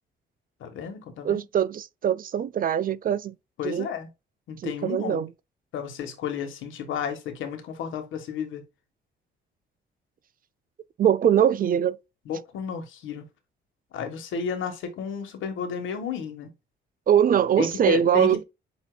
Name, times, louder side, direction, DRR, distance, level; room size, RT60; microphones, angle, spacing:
voice 1, 0.6-1.4 3.6-4.1 4.5-5.2 5.7-8.6 12.3-13.2 13.9-16.5 17.6-18.4, left 7 dB, 80° left, 1.4 m, -32 dB
voice 2, 1.2-3.3 3.6-3.9 4.6-5.3 11.0-12.0 17.1-18.4, right 9 dB, 45° right, 0.4 m, -22 dB
8.2 x 2.8 x 2.3 m
cardioid pair, 90°, 20 cm